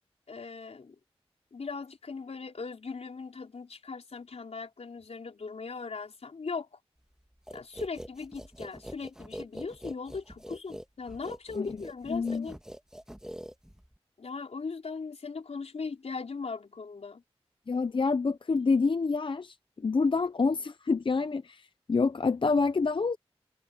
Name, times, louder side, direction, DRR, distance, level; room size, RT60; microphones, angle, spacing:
voice 1, 0.3-1.0 1.5-6.8 7.5-12.6 14.2-17.2, left 4 dB, 80° left, 4.4 m, -39 dB
sound 1, 7.5-14.0, equal, 5° right, 1.9 m, -44 dB
voice 2, 12.1-12.5 17.7-23.2, left 4 dB, 50° left, 0.6 m, -27 dB
wide cardioid pair, 65°, 11 cm